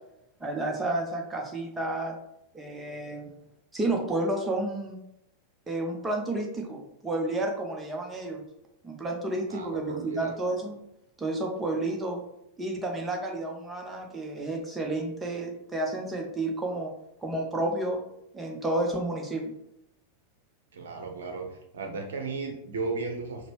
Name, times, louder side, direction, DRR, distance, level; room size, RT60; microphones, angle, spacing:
voice 1, 0.4-2.2 2.5-3.3 3.7-5.0 5.7-8.4 8.8-10.8 11.2-12.2 12.6-16.9 17.2-18.0 18.3-19.5, right 2 dB, 15° right, 1 dB, 0.7 m, -31 dB
voice 2, 9.5-10.3 20.7-21.5 21.7-23.5, right 3 dB, 65° right, 3 dB, 0.7 m, -35 dB
5.1 x 2.1 x 3.1 m, 0.82 s
figure-of-eight pair, 90°, 0 cm